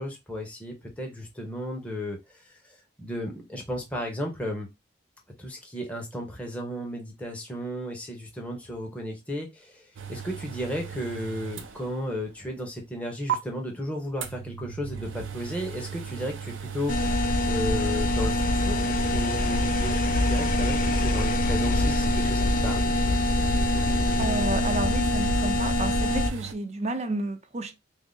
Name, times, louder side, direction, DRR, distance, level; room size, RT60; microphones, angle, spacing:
voice 1, 0.0-4.7 5.4-16.9 17.5-20.0 20.2-22.9, equal, 5° left, 0.9 m, -34 dB
sound 1, 10.0-12.3 12.6-12.7 13.3-13.4 14.2-26.5, right 7 dB, 90° right, 0.5 m, -37 dB
sound 2, 16.9-26.3, left 1 dB, 45° left, 0.5 m, -24 dB
voice 2, 24.2-27.8, right 2 dB, 35° right, 0.5 m, -31 dB
3.6 x 2.1 x 3.8 m
head